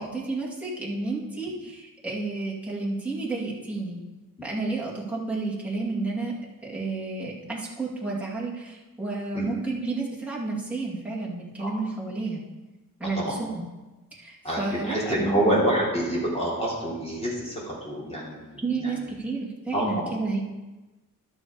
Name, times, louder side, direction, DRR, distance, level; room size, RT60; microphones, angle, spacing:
voice 1, 0.0-4.0 4.4-6.3 6.6-12.4 13.0-13.6 14.1-15.5 18.6-20.4, right 3 dB, 5° right, -5 dB, 2.4 m, -31 dB
voice 2, 14.4-19.0 19.7-20.2, right 1 dB, 15° left, -6 dB, 3.4 m, -27 dB
12.0 x 6.1 x 5.0 m, 1.1 s
wide cardioid pair, 115°, 36 cm